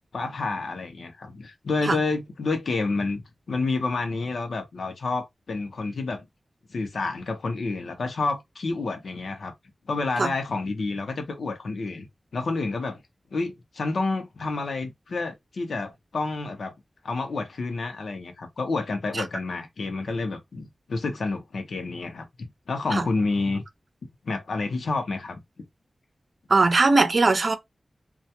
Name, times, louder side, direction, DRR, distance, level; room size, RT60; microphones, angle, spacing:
voice 1, 0.1-6.3 6.7-9.5 9.9-12.1 12.3-13.0 13.3-16.7 17.0-23.6 24.2-25.4, left 3 dB, 85° left, 0.6 m, -29 dB
voice 2, 26.5-27.6, right 3 dB, 65° right, 0.6 m, -20 dB
2.2 x 2.1 x 2.8 m
cardioid pair, 40°, 0 cm